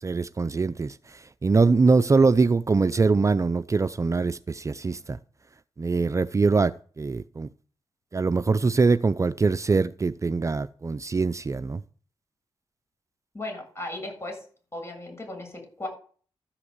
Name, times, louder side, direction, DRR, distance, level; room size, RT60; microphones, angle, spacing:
voice 1, 0.0-5.2 5.8-7.5 8.1-11.8, right 4 dB, 35° right, 0.5 m, -23 dB
voice 2, 13.3-14.4 14.7-15.9, left 2 dB, 30° left, 7.3 m, -36 dB
13.5 x 5.9 x 8.1 m
cardioid pair, 60°, 9 cm